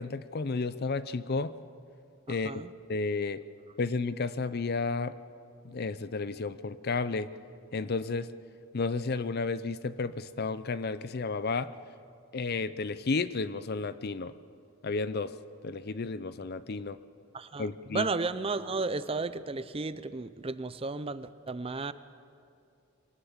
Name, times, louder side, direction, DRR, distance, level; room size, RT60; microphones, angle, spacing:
voice 1, 0.0-1.6 2.3-2.6 2.9-3.4 3.8-5.2 5.6-7.3 7.7-8.3 8.7-11.7 12.3-14.4 14.8-15.3 15.6-17.0 17.6-18.1, left 4 dB, 50° left, 15 dB, 0.6 m, -32 dB
voice 2, 2.3-2.7 17.3-21.9, right 3 dB, 25° right, 14 dB, 0.5 m, -34 dB
23.5 x 19.0 x 7.3 m, 2.5 s
head